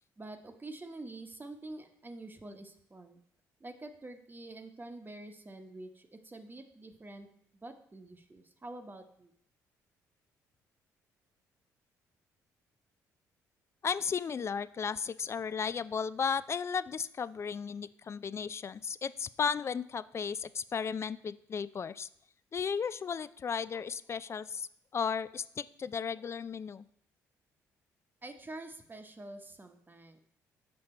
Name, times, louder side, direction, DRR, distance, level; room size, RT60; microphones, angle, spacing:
voice 1, 0.2-3.2 3.6-7.3 7.5-9.3 28.2-30.2, right 2 dB, 25° right, 6 dB, 1.0 m, -47 dB
voice 2, 13.8-22.1 22.5-26.9, left 6 dB, 35° left, 17 dB, 0.3 m, -35 dB
6.9 x 5.7 x 4.3 m, 0.69 s
supercardioid pair, 55°, 8 cm